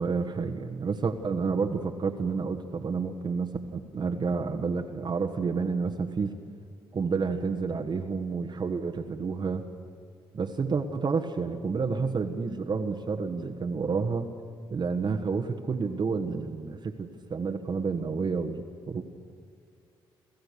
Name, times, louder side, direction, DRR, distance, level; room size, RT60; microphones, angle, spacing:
voice 1, 0.0-6.3 6.9-9.6 10.3-14.3 14.7-19.0, right 5 dB, 40° right, 2 dB, 1.3 m, -30 dB
28.5 x 14.5 x 6.7 m, 2.4 s
hypercardioid pair, 45°, 11 cm